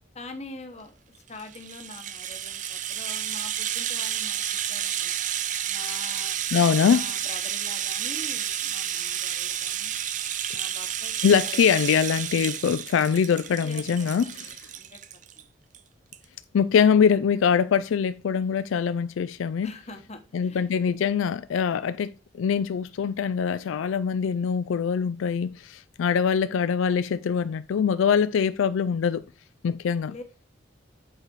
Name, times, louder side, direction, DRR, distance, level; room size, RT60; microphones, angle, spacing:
voice 1, 0.1-1.0 1.3-4.4 4.7-5.1 5.7-6.5 6.9-10.0 10.5-11.6 13.6-15.4 19.6-20.7 30.1-30.5, left 2 dB, 35° left, 1.0 m, -44 dB
Rattle (instrument), 1.3-15.4 15.7-15.8 16.1-16.2, right 10 dB, 40° right, 0.4 m, -31 dB
voice 2, 6.5-7.1 11.2-14.5 16.5-19.7 20.3-29.2 29.6-30.1, left 7 dB, 80° left, 0.3 m, -23 dB
7.9 x 4.1 x 4.6 m
head